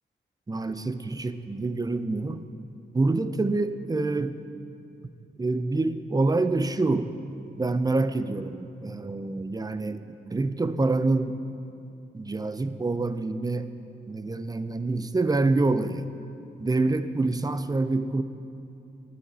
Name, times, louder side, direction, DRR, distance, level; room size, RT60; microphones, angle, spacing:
voice 1, 0.5-2.5 2.9-4.4 5.4-7.1 7.6-11.4 12.1-13.7 14.1-16.1 16.6-18.2, right 3 dB, 20° right, 12 dB, 0.5 m, -26 dB
12.0 x 6.9 x 4.1 m, 2.7 s
cardioid pair, 55°, 19 cm